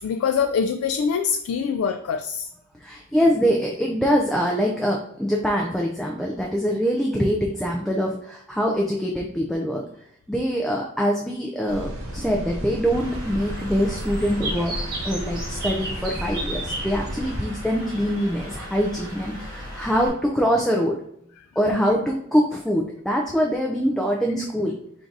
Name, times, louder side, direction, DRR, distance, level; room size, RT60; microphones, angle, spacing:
voice 1, 0.0-2.5 21.7-21.9, left 6 dB, 90° left, 8 dB, 0.3 m, -24 dB
voice 2, 2.8-9.8 10.3-21.0 21.6-24.7, equal, ahead, -1 dB, 0.4 m, -24 dB
sound 1, 11.7-17.4, equal, 90° right, 1.0 m, -34 dB
Bird, 12.9-20.1, right 1 dB, 50° right, 1.7 m, -34 dB
3.8 x 2.6 x 4.6 m, 0.69 s
head